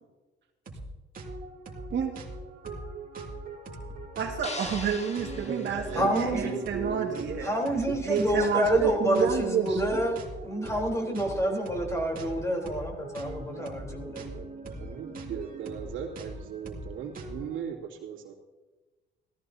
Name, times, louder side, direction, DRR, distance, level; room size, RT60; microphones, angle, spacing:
sound 1, 0.7-0.9 1.1-17.6, right 2 dB, 45° right, 2.5 m, -41 dB
voice 1, 4.1-7.5 8.0-10.1, right 6 dB, 65° right, 2 dB, 1.8 m, -29 dB
sound 2, 4.4-6.7, left 3 dB, 35° left, 1.7 m, -42 dB
voice 2, 5.3-7.9 14.3-14.5 14.8-18.3, right 7 dB, 85° right, -2 dB, 2.7 m, -38 dB
voice 3, 6.0-6.6 7.4-10.2 10.4-14.3, equal, 15° left, 1 dB, 3.7 m, -28 dB
17.0 x 14.0 x 2.8 m, 1.2 s
cardioid pair, 90°, 20 cm